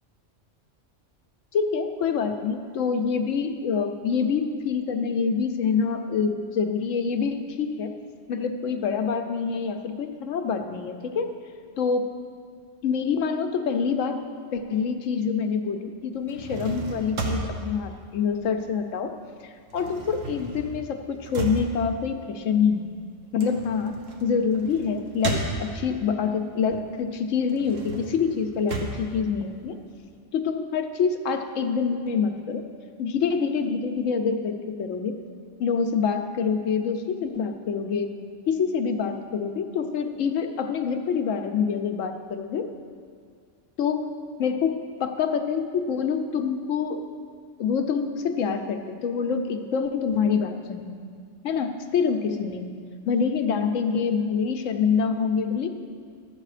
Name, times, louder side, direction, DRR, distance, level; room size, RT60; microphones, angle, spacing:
voice 1, 1.5-8.0 8.3-11.3 11.8-12.1 12.8-14.2 14.5-19.1 19.4-22.9 23.3-23.9 24.2-29.8 30.3-32.7 33.0-35.2 35.6-38.1 38.5-42.7 43.8-47.0 47.6-51.0 51.4-52.7 53.1-55.7, left 6 dB, 90° left, 6 dB, 1.1 m, -26 dB
sound 1, 16.1-19.0 19.3-26.1 26.5-30.1, right 3 dB, 90° right, 1.5 m, -34 dB
12.0 x 8.1 x 4.9 m, 2.1 s
omnidirectional pair, 1.3 m